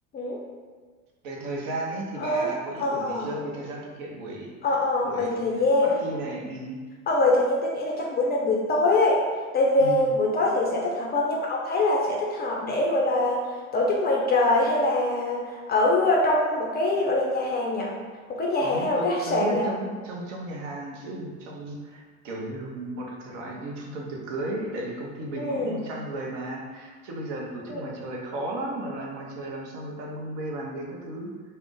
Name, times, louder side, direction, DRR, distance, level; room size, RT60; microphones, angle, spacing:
voice 1, 1.2-4.5 5.0-6.8 9.8-10.1 18.6-31.3, right 1 dB, 65° right, -1 dB, 0.7 m, -34 dB
voice 2, 2.2-2.5 2.8-3.3 4.6-5.9 7.1-9.2 9.5-13.4 13.7-17.9 18.4-19.7 25.4-25.8 27.7-27.8, left 2 dB, 25° left, -2 dB, 0.4 m, -23 dB
2.4 x 2.1 x 3.6 m, 1.5 s
hypercardioid pair, 70°, 41 cm